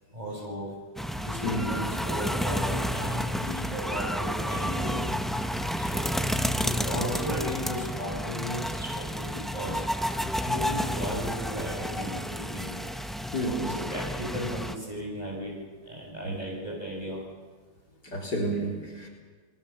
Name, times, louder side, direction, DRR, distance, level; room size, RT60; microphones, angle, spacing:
voice 1, 0.1-0.7 1.2-5.0 5.4-6.3 6.6-9.8 10.4-12.8 13.3-15.5 15.8-17.2, equal, 20° right, -2 dB, 7.5 m, -36 dB
sound 1, 1.0-14.7, equal, ahead, 0.5 m, -31 dB
voice 2, 18.0-19.1, right 1 dB, 65° left, 0 dB, 4.2 m, -30 dB
29.5 x 19.5 x 7.1 m, 1.5 s
omnidirectional pair, 1.9 m